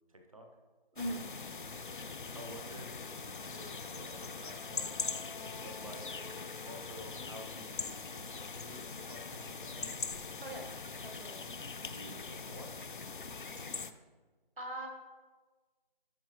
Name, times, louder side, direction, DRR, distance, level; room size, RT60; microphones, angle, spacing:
voice 1, 0.1-0.5 2.3-5.2 5.6-6.2 6.6-10.0 11.8-12.7, right 1 dB, 35° right, 3 dB, 0.8 m, -51 dB
sound 1, 1.0-13.9, left 4 dB, 60° left, 0.5 m, -42 dB
voice 2, 11.0-11.4 14.6-14.9, right 1 dB, 65° right, 1 dB, 1.9 m, -40 dB
11.0 x 5.4 x 3.0 m, 1.3 s
figure-of-eight pair, 170°, 29 cm